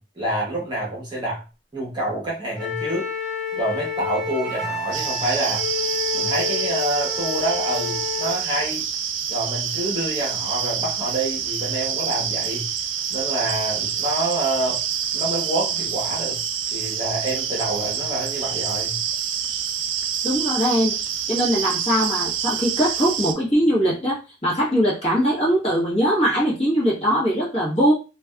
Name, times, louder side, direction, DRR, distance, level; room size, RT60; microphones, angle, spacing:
voice 1, 0.0-1.4 1.7-3.1 3.5-5.7 6.1-8.9 9.3-12.7 13.1-14.8 15.1-16.4 16.7-19.0, right 1 dB, 20° right, -4 dB, 0.9 m, -27 dB
Wind instrument woodwind instrument, 2.6-8.4, left 6 dB, ahead, 1.1 m, -29 dB
sound 1, 4.9-23.3, right 8 dB, 65° right, 0.3 m, -27 dB
voice 2, 20.2-20.9 21.3-27.9, equal, 30° left, -5 dB, 1.2 m, -21 dB
3.3 x 2.3 x 2.3 m, 0.32 s
head